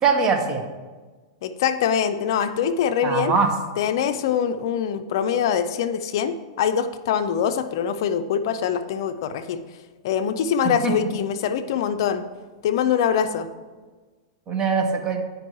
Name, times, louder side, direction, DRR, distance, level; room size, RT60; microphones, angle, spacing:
voice 1, 0.0-0.7 3.0-3.5 10.6-11.1 14.5-15.2, right 5 dB, 25° right, 4 dB, 1.0 m, -22 dB
voice 2, 1.4-3.3 3.8-9.6 10.0-12.2 12.6-13.5, left 8 dB, 60° left, 9 dB, 0.5 m, -23 dB
9.5 x 5.2 x 3.1 m, 1.3 s
hypercardioid pair, 135°, 3 cm